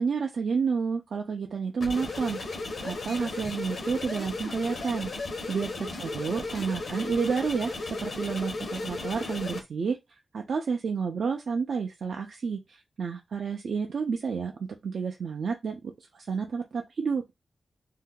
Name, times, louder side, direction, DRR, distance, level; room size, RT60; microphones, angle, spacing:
voice 1, 0.0-2.4 2.8-5.1 5.5-10.0 10.3-14.5 14.8-17.2, right 5 dB, 75° right, 0.4 m, -30 dB
sound 1, 1.8-9.6, left 3 dB, 75° left, 0.9 m, -35 dB
2.6 x 2.2 x 3.6 m
cardioid pair, 75°, 0 cm